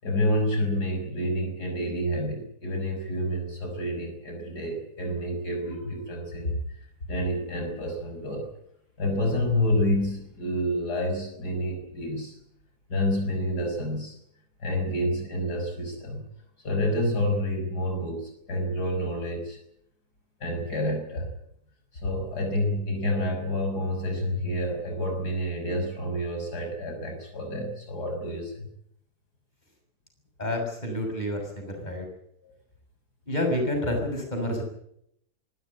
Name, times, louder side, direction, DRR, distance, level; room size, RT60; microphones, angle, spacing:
voice 1, 0.0-6.6 7.1-8.5 9.0-12.3 12.9-14.2 14.6-16.2 16.6-19.6 20.4-21.3 21.9-28.7, left 1 dB, 80° left, 4 dB, 6.5 m, -28 dB
voice 2, 30.4-32.1 33.3-34.6, left 1 dB, 25° left, 3 dB, 6.9 m, -29 dB
25.0 x 13.5 x 9.9 m, 0.73 s
omnidirectional pair, 1.7 m